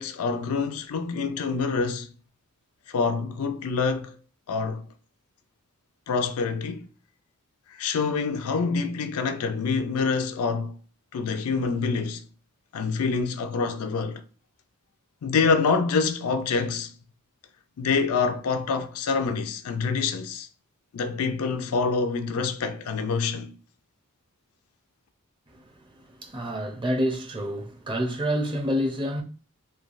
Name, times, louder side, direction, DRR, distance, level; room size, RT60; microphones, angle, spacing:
voice 1, 0.0-2.1 2.9-4.1 4.5-4.9 6.1-6.9 7.8-10.7 11.1-12.2 12.7-14.2 15.2-16.9 17.8-20.5 20.9-23.5, left 4 dB, 70° left, 0.4 m, -26 dB
voice 2, 26.1-29.2, equal, 20° right, 0.6 m, -28 dB
3.2 x 2.2 x 2.4 m
head